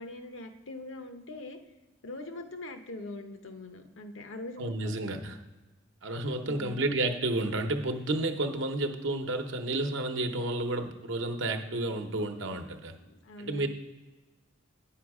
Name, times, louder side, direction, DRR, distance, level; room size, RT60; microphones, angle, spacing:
voice 1, 0.0-1.6 2.0-4.9 6.3-6.8 12.9-13.7, left 2 dB, 80° left, 7 dB, 0.9 m, -42 dB
voice 2, 4.6-5.4 6.0-13.0 13.4-13.7, right 2 dB, 70° right, 5 dB, 0.8 m, -31 dB
9.4 x 5.8 x 4.8 m, 1.2 s
head